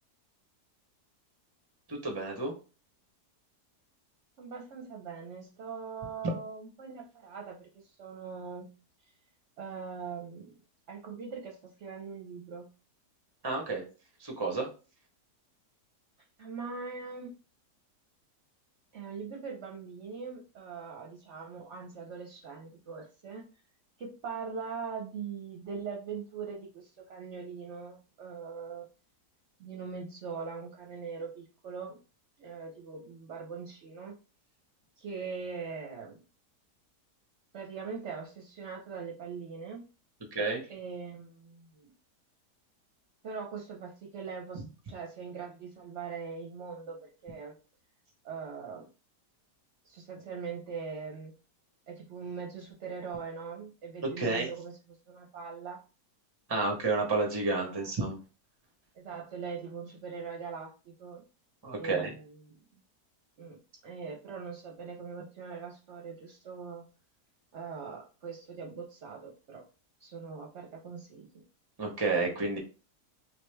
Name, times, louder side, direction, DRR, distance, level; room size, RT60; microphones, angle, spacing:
voice 1, 1.9-2.5 6.2-6.3 13.4-13.8 14.2-14.7 40.3-40.6 54.0-54.5 56.5-58.2 61.6-62.1 71.8-72.6, right 3 dB, 25° right, 2 dB, 0.5 m, -30 dB
voice 2, 4.4-8.7 9.6-10.6 10.9-12.7 16.4-17.3 18.9-23.4 24.0-28.9 29.6-32.0 32.4-34.1 35.0-36.2 37.5-39.8 40.7-41.9 43.2-47.6 48.2-48.9 49.8-51.3 51.9-54.7 55.1-55.8 57.6-57.9 58.9-61.2 61.7-62.6 63.4-66.8 67.5-69.6 70.0-71.4, right 5 dB, 55° right, 1 dB, 0.8 m, -41 dB
3.6 x 2.8 x 3.2 m, 0.34 s
omnidirectional pair, 1.8 m